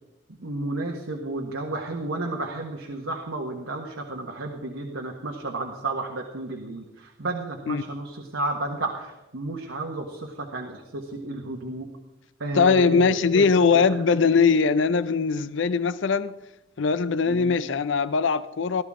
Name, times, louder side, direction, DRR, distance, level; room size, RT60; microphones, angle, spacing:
voice 1, 0.4-11.9 12.4-13.5 13.7-13.8 17.3-17.6, right 2 dB, 90° right, 1.6 m, -32 dB
voice 2, 12.5-16.3 16.8-18.8, left 5 dB, 70° left, 0.5 m, -21 dB
16.5 x 13.5 x 3.7 m
head